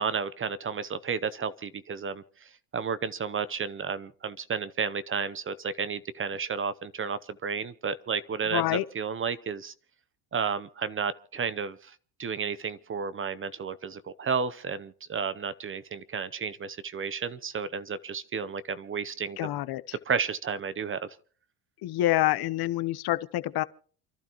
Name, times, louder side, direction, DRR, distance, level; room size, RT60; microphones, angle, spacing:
voice 1, 0.0-9.7 10.3-11.9 12.2-19.4 20.1-21.1, right 6 dB, 25° right, 0.7 m, -32 dB
voice 2, 8.5-8.8 19.4-19.8 21.8-23.6, left 15 dB, 50° left, 0.9 m, -27 dB
29.0 x 12.0 x 3.0 m
supercardioid pair, 100°, 47 cm